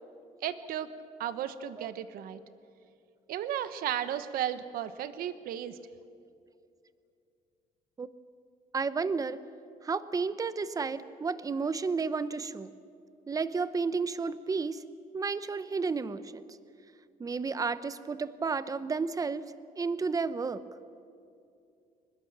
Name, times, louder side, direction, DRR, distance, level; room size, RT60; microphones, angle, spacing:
voice 1, 0.4-0.9 1.2-2.4 3.3-5.8, right 10 dB, 80° right, 12 dB, 1.2 m, -34 dB
voice 2, 8.7-9.4 9.8-12.7 13.3-14.8 15.1-16.4 17.2-20.6, right 4 dB, 25° right, 14 dB, 0.8 m, -32 dB
22.5 x 20.5 x 7.4 m, 2.5 s
cardioid pair, 130°, 15 cm